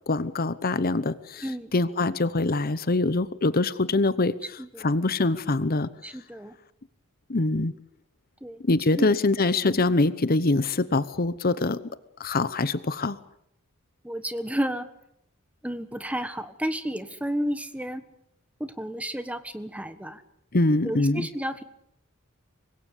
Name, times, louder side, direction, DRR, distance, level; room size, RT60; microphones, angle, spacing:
voice 1, 0.1-1.4 1.7-4.3 4.8-5.9 7.3-7.7 8.7-11.8 12.2-13.2 20.5-21.3, left 2 dB, 45° left, 15 dB, 0.9 m, -24 dB
voice 2, 6.0-6.5 8.4-8.6 9.0-9.1 9.6-9.8 14.0-14.9 15.6-18.0 18.6-20.2 20.8-21.6, equal, 5° right, 11 dB, 1.5 m, -32 dB
25.0 x 21.0 x 8.4 m, 0.75 s
head